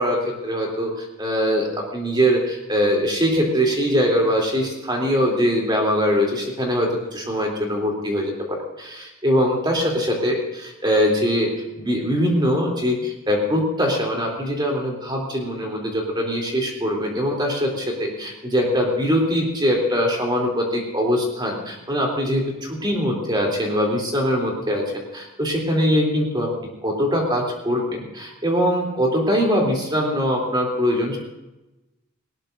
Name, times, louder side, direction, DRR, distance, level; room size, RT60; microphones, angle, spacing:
voice 1, 0.0-1.7 1.9-11.5 11.8-24.8 25.1-26.5 26.8-31.2, equal, 20° right, -1 dB, 3.2 m, -22 dB
19.5 x 18.0 x 2.7 m, 1.0 s
head